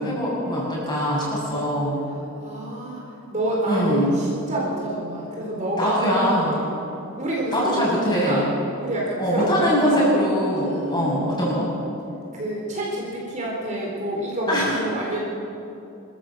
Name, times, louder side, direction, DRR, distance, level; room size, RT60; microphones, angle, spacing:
voice 1, 0.0-2.0 3.7-4.1 5.8-6.6 7.5-8.4 9.2-11.7 14.5-14.7, equal, 20° left, -5 dB, 7.0 m, -22 dB
voice 2, 2.4-3.0 3.3-6.7 7.2-8.4 8.8-10.0 10.5-11.6 12.3-15.2, right 1 dB, 35° right, -4 dB, 4.0 m, -28 dB
25.5 x 13.5 x 7.6 m, 2.8 s
head